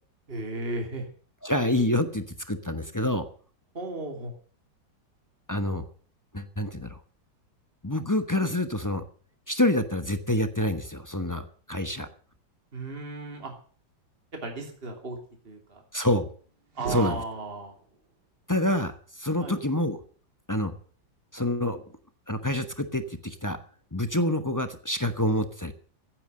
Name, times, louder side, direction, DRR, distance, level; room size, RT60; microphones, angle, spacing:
voice 1, 0.3-1.0 3.7-4.3 12.7-13.5 14.4-15.2 15.4-15.8 16.7-17.7 19.4-19.5, right 2 dB, 30° right, 3 dB, 3.0 m, -34 dB
voice 2, 1.4-3.2 5.5-5.8 6.3-7.0 7.8-9.0 9.5-12.1 15.9-16.3 16.9-17.2 18.5-20.0 20.5-20.7 21.3-21.8 22.3-23.6 23.9-25.7, left 1 dB, 15° left, 8 dB, 0.7 m, -27 dB
sound 1, 16.7-18.0, right 4 dB, 60° right, 2.7 m, -39 dB
15.0 x 9.1 x 7.7 m, 0.44 s
omnidirectional pair, 2.0 m